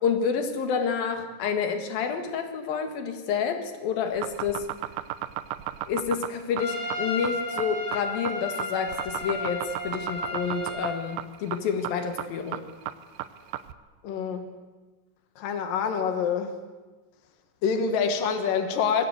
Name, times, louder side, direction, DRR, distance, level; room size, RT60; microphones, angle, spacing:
voice 1, 0.0-4.7 5.9-12.6, left 6 dB, 90° left, 6 dB, 3.6 m, -29 dB
sound 1, 4.1-13.7, right 13 dB, 75° right, 2.5 m, -34 dB
Trumpet, 6.6-11.0, left 2 dB, 20° left, 4.4 m, -34 dB
voice 2, 14.0-14.4 15.4-16.5 17.6-19.0, left 6 dB, 75° left, 7 dB, 3.3 m, -26 dB
26.5 x 20.0 x 8.1 m, 1.3 s
omnidirectional pair, 4.0 m